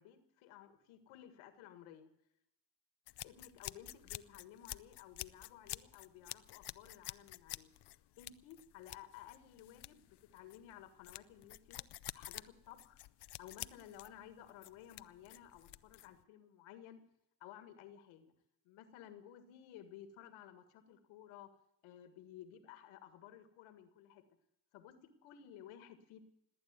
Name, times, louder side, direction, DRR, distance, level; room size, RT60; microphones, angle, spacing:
voice 1, 0.0-2.1 3.2-7.7 8.2-13.0 13.4-17.0 17.4-18.3 18.6-21.5 21.8-24.2 24.7-26.2, left 10 dB, 90° left, 10 dB, 1.8 m, -55 dB
sound 1, 3.1-16.2, left 14 dB, 55° left, 0.7 m, -50 dB
19.5 x 8.8 x 8.2 m, 0.79 s
supercardioid pair, 60°, 47 cm